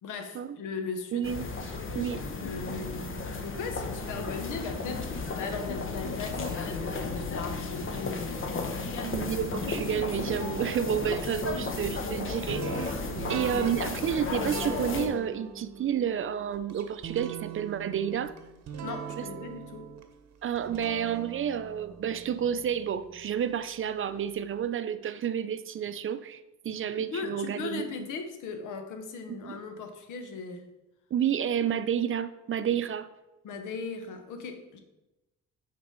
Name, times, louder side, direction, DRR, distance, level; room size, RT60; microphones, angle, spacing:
voice 1, 0.0-1.4 2.4-9.2 13.3-13.7 18.8-19.9 26.7-30.6 33.4-34.8, left 4 dB, 85° left, 7 dB, 1.0 m, -38 dB
voice 2, 1.1-1.5 1.9-2.2 9.0-12.9 13.3-18.3 20.4-27.9 29.4-29.6 31.1-33.1, right 9 dB, 45° right, 12 dB, 0.5 m, -30 dB
sound 1, 1.2-15.1, left 3 dB, 45° left, 1.0 m, -34 dB
sound 2, 12.5-23.5, right 7 dB, 60° right, 0.9 m, -41 dB
6.3 x 4.1 x 5.3 m, 0.99 s
cardioid pair, 90°, 30 cm